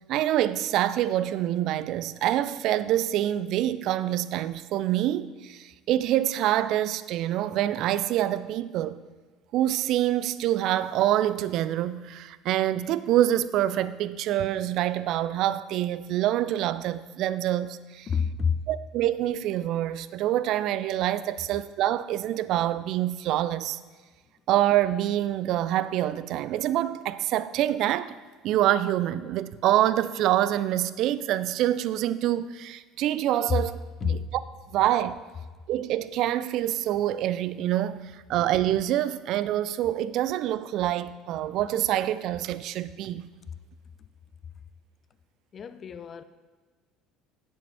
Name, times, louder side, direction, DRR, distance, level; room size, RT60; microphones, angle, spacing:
voice 1, 0.0-9.0 9.5-18.1 18.7-23.8 24.5-28.1 28.4-34.4 34.7-35.2 35.7-43.2, right 12 dB, 55° right, 0.4 m, -26 dB
voice 2, 18.1-18.7 33.5-33.7 34.0-34.3 45.5-46.2, left 6 dB, 40° left, 0.6 m, -28 dB
9.8 x 9.8 x 3.5 m
figure-of-eight pair, 60°, 0 cm